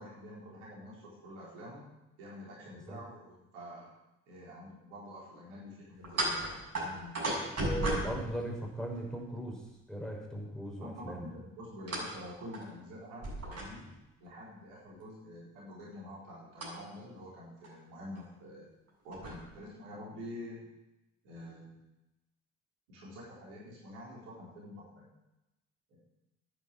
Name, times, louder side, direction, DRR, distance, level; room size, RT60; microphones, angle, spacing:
voice 1, 0.0-1.8 2.2-3.9 4.3-7.2 10.8-13.9 14.2-18.7 19.0-20.7 21.2-21.8 22.9-25.1 25.9-26.0, left 1 dB, 75° right, -5 dB, 4.4 m, -47 dB
sound 1, 6.0-9.1 11.9-12.2 12.5-12.6 13.2-14.0 16.6-16.7 17.6-17.8 18.1-18.2 18.9-19.4, right 1 dB, 45° right, 6.7 m, -35 dB
voice 2, 7.4-9.6 9.9-11.3, equal, ahead, -1 dB, 5.5 m, -38 dB
10.5 x 9.5 x 8.5 m, 0.95 s
figure-of-eight pair, 40°, 36 cm